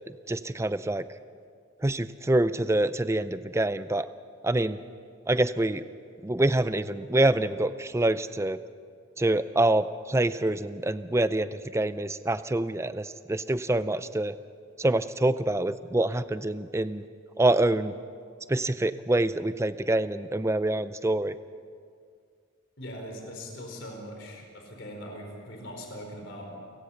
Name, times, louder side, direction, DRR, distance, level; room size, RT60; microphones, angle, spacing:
voice 1, 0.3-1.1 1.8-4.1 4.4-4.8 5.3-5.8 6.2-8.6 9.2-14.4 14.8-17.0 17.4-17.9 18.5-21.4, right 1 dB, 15° right, 13 dB, 0.4 m, -26 dB
voice 2, 22.8-26.5, equal, 55° left, 1 dB, 4.5 m, -41 dB
30.0 x 16.5 x 5.8 m, 2.2 s
head